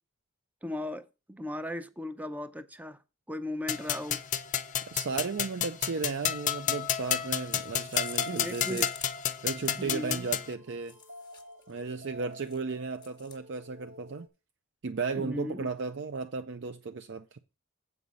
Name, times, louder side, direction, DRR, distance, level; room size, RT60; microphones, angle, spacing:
voice 1, 0.6-3.0 3.3-4.2 8.3-8.9 9.8-10.3 15.2-15.7, left 1 dB, 10° right, 0.5 m, -37 dB
sound 1, 3.7-10.5, left 9 dB, 40° left, 0.6 m, -31 dB
voice 2, 4.9-8.9 9.4-10.9 11.7-14.3 14.8-17.4, right 4 dB, 60° right, 0.5 m, -35 dB
sound 2, 7.3-10.0 10.7-11.7 12.3-12.6 12.9-13.4, left 7 dB, 20° left, 1.1 m, -48 dB
sound 3, 9.2-14.3, equal, 90° right, 2.2 m, -53 dB
8.1 x 5.4 x 6.1 m
head